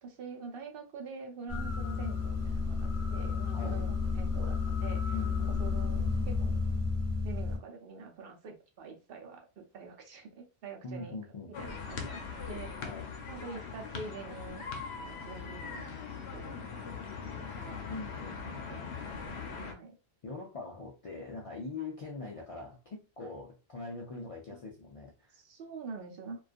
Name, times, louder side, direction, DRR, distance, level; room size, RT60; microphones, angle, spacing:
voice 1, 0.0-6.6 7.2-11.2 11.6-12.7 13.3-14.6 15.0-15.9 16.3-17.8 18.7-19.9 24.5-24.6 25.3-26.4, right 4 dB, 65° right, 0.8 m, -46 dB
sound 1, 1.5-7.6, left 4 dB, 15° left, 0.9 m, -31 dB
voice 2, 3.5-3.9 5.1-5.6 10.8-11.7 12.8-13.1 17.9-18.9 20.2-25.4, left 3 dB, 55° left, 0.4 m, -43 dB
sound 2, 11.5-19.7, left 5 dB, 85° left, 0.8 m, -41 dB
2.3 x 2.3 x 2.4 m
omnidirectional pair, 1.1 m